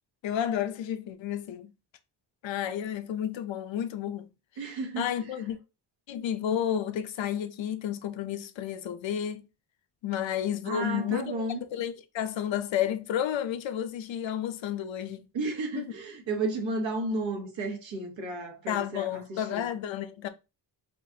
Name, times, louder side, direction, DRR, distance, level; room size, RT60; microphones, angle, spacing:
voice 1, 0.2-1.7 2.4-4.3 4.6-5.6 6.1-9.5 10.0-15.2 15.7-15.8 18.7-20.3, left 10 dB, 85° left, 0.7 m, -31 dB
voice 2, 4.6-5.1 10.6-11.6 15.3-19.7, right 2 dB, 90° right, 1.4 m, -33 dB
5.8 x 2.5 x 2.8 m
wide cardioid pair, 120°, 44 cm